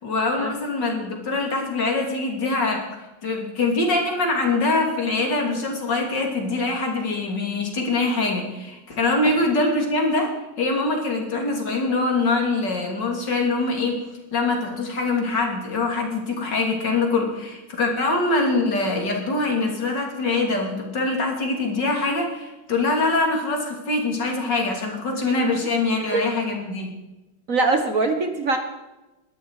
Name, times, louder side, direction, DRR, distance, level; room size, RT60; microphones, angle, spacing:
voice 1, 0.0-2.9 3.2-14.1 14.3-26.9, left 3 dB, 60° left, 1 dB, 3.6 m, -23 dB
voice 2, 27.5-28.6, right 3 dB, 45° right, 6 dB, 1.5 m, -22 dB
21.0 x 12.5 x 4.9 m, 1.0 s
omnidirectional pair, 2.2 m